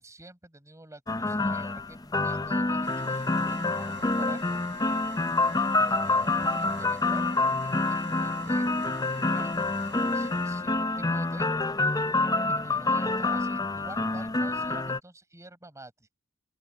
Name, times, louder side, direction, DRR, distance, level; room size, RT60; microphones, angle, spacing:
voice 1, 0.0-4.6 5.8-11.5 12.5-15.9, right 1 dB, 15° right, 5.0 m, -48 dB
sound 1, 1.1-15.0, left 2 dB, 20° left, 0.6 m, -27 dB
sound 2, 2.8-10.9, right 6 dB, 60° right, 7.3 m, -50 dB
open air
head